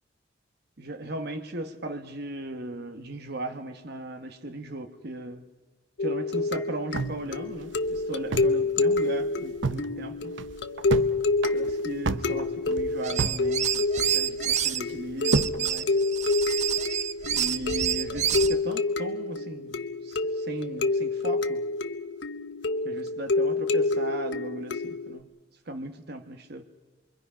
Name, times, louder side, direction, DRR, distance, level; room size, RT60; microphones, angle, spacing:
voice 1, 0.8-5.5 6.0-10.4 11.5-16.0 17.3-21.6 22.8-25.3 25.6-26.6, right 1 dB, 60° right, 1.2 m, -37 dB
sound 1, 6.0-25.2, left 3 dB, 75° left, 1.0 m, -28 dB
sound 2, 6.9-8.6 8.9-9.0 9.4-9.9 10.3-11.1 11.4-13.4 13.7-14.4 14.9-15.6, right 3 dB, 90° right, 0.8 m, -30 dB
sound 3, 13.0-14.8 15.2-18.6, right 10 dB, 40° right, 0.6 m, -28 dB
28.0 x 23.5 x 5.7 m
head